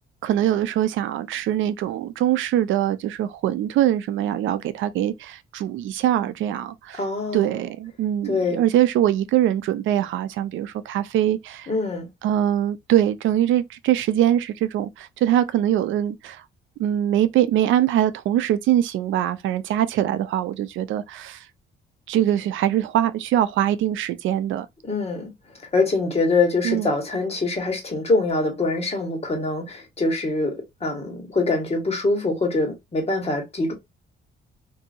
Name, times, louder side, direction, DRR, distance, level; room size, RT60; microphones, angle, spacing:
voice 1, 0.2-7.0 7.3-11.7 12.2-16.4 16.8-21.5 22.1-24.7 26.6-26.9, right 11 dB, 75° right, 0.4 m, -22 dB
voice 2, 6.9-7.6 8.3-8.6 11.7-12.1 24.8-25.3 25.7-30.5 30.8-33.7, left 3 dB, 30° left, 1.4 m, -24 dB
2.7 x 2.6 x 2.5 m
cardioid pair, 90°, 20 cm